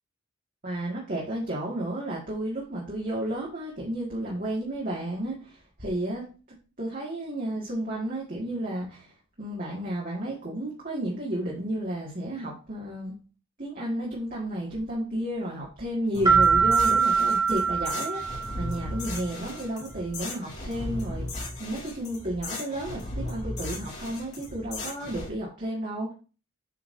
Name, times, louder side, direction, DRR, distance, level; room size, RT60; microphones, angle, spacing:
voice 1, 0.6-6.3 6.8-13.2 13.6-21.3 21.6-26.1, right 1 dB, 40° right, -5 dB, 2.0 m, -32 dB
sound 1, 16.1-25.3, left 1 dB, 35° left, 3.0 m, -36 dB
sound 2, 16.3-18.9, right 5 dB, 20° right, 1.7 m, -23 dB
8.0 x 5.7 x 2.7 m, 0.33 s
head